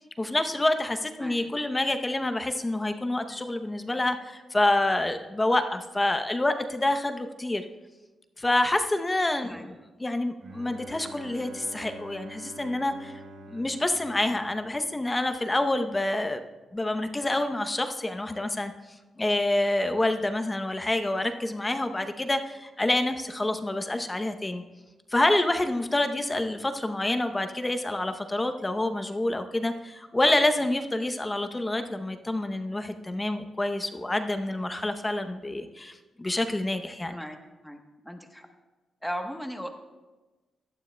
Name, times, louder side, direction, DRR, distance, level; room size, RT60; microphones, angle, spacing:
voice 1, 0.2-7.6 8.4-9.7 10.0-13.1 13.5-16.4 16.7-18.7 19.2-24.6 25.1-37.1, left 1 dB, 15° left, 8 dB, 0.7 m, -27 dB
Bowed string instrument, 10.4-15.1, right 1 dB, 60° right, 3.3 m, -46 dB
voice 2, 37.6-38.5 39.0-39.7, equal, ahead, 4 dB, 1.0 m, -37 dB
17.0 x 11.5 x 2.2 m, 1.2 s
cardioid pair, 110°, 0 cm